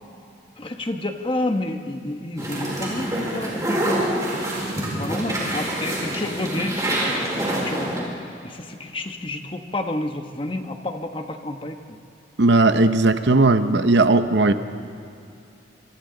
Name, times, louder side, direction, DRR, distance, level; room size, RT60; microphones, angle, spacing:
voice 1, 0.6-4.0 4.5-8.1 8.4-11.8, left 1 dB, 25° left, 5 dB, 1.2 m, -30 dB
sound 1, 2.4-8.0, right 1 dB, 20° right, 4.7 m, -26 dB
voice 2, 12.4-14.5, right 2 dB, 65° right, 10 dB, 0.8 m, -17 dB
26.0 x 25.5 x 3.9 m, 2.6 s
head